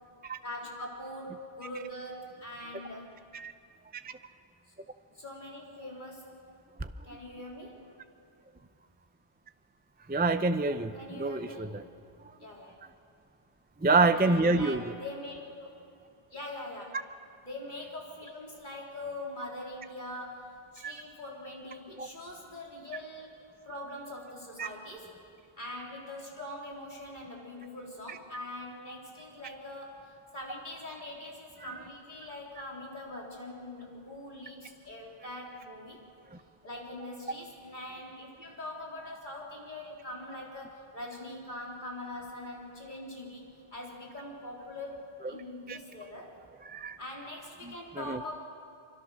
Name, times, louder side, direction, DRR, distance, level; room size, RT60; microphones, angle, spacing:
voice 1, 0.4-3.1 4.7-4.8 5.1-6.4 7.0-7.9 10.7-11.6 12.4-12.8 14.1-15.7 16.3-17.0 17.4-25.1 25.6-36.0 36.6-43.5 43.7-46.3 47.0-48.4, left 1 dB, 40° left, -3 dB, 4.1 m, -43 dB
voice 2, 10.1-11.8 13.8-14.9 20.8-20.9 22.0-22.1 24.6-24.7 31.6-31.7 45.7-45.8 46.7-47.0 47.6-48.2, right 3 dB, 15° right, 10 dB, 0.4 m, -27 dB
25.5 x 25.0 x 6.4 m, 2.4 s
omnidirectional pair, 1.2 m